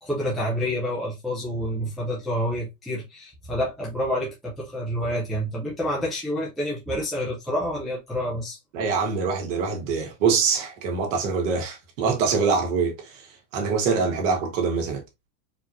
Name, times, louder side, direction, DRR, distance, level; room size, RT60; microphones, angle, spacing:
voice 1, 0.0-8.6, equal, ahead, 0.5 m, -28 dB
voice 2, 8.7-13.3 13.5-15.0, right 5 dB, 55° right, 1.5 m, -24 dB
4.3 x 2.9 x 2.5 m
supercardioid pair, 155°, 45 cm